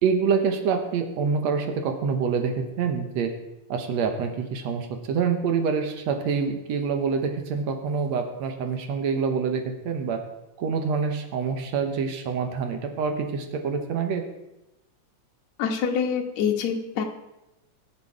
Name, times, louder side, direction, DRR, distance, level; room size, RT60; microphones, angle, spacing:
voice 1, 0.0-3.3 3.7-10.2 10.6-14.2, right 5 dB, 65° right, 5 dB, 2.2 m, -26 dB
voice 2, 15.6-17.0, left 7 dB, 65° left, 2 dB, 2.4 m, -25 dB
19.5 x 6.9 x 4.8 m, 0.94 s
omnidirectional pair, 3.5 m